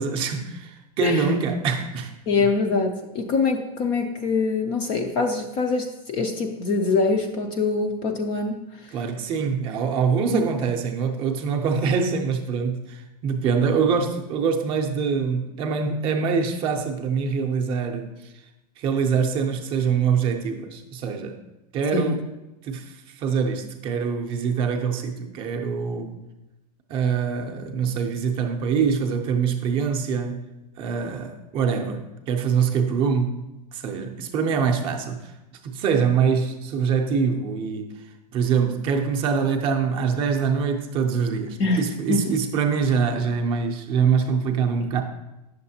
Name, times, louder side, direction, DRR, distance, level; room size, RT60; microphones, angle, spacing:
voice 1, 0.0-2.1 8.9-18.1 18.8-21.4 21.7-22.2 22.6-26.2 26.9-30.5 30.8-33.4 33.7-35.3 35.7-37.9 38.3-45.0, right 6 dB, 25° right, 0.5 m, -24 dB
voice 2, 2.3-8.6 10.3-10.4 21.9-22.2 41.6-41.8 42.1-42.4 44.8-44.9, left 4 dB, 25° left, 0.4 m, -24 dB
8.7 x 6.6 x 2.7 m
supercardioid pair, 160°, 21 cm